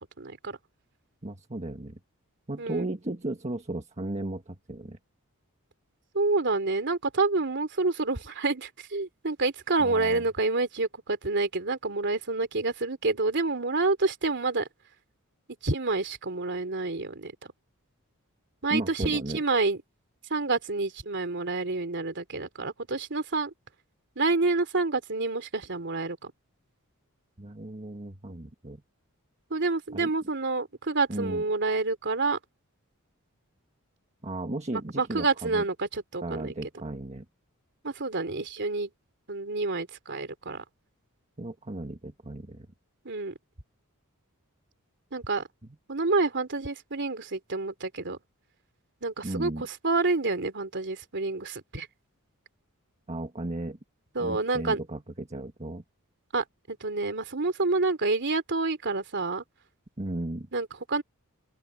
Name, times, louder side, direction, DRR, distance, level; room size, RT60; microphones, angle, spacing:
voice 1, 0.2-0.6 2.6-2.8 6.1-14.7 15.6-17.3 18.6-19.8 20.3-23.5 24.2-26.3 29.5-32.4 35.0-36.5 37.8-38.9 39.3-40.6 43.0-43.3 45.1-45.4 45.9-48.2 49.0-51.9 54.1-54.8 56.3-59.4 60.5-61.0, right 3 dB, 55° right, 3.1 m, -28 dB
voice 2, 1.2-2.0 2.5-5.0 9.8-10.2 18.7-19.4 27.4-28.8 29.9-30.1 31.1-31.4 34.2-35.6 36.2-37.2 41.4-42.7 49.2-49.6 53.1-53.8 54.2-55.8 60.0-60.5, right 1 dB, 30° right, 1.5 m, -35 dB
open air
head